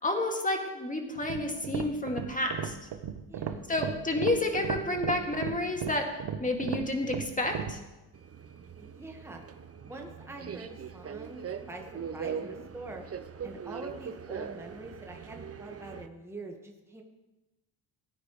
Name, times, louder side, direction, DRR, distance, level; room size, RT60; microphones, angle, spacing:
voice 1, 0.0-2.8 3.7-6.1 6.4-7.8, left 2 dB, 15° left, 2 dB, 2.3 m, -30 dB
sound 1, 1.2-7.8, right 8 dB, 50° right, 1.0 m, -36 dB
voice 2, 3.3-3.7 8.8-9.4 9.8-11.8 12.1-13.0 13.4-17.0, right 2 dB, 5° right, 2 dB, 1.6 m, -45 dB
Subway metro underground, 8.1-16.1, right 7 dB, 30° right, 0.8 m, -41 dB
16.5 x 9.4 x 3.3 m, 1.0 s
supercardioid pair, 65°, 50 cm